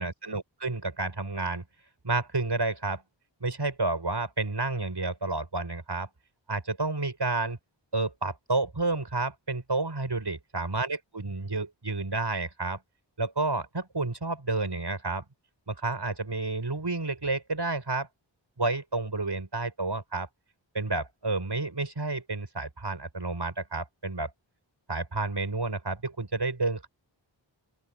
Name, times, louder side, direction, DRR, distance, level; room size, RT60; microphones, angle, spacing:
voice 1, 0.0-1.6 2.0-3.0 3.4-6.1 6.5-7.6 7.9-12.8 13.2-15.2 15.7-18.1 18.6-20.3 20.7-24.3 24.9-26.9, right 3 dB, 60° right, 7.5 m, -30 dB
open air
wide cardioid pair, 50°, 47 cm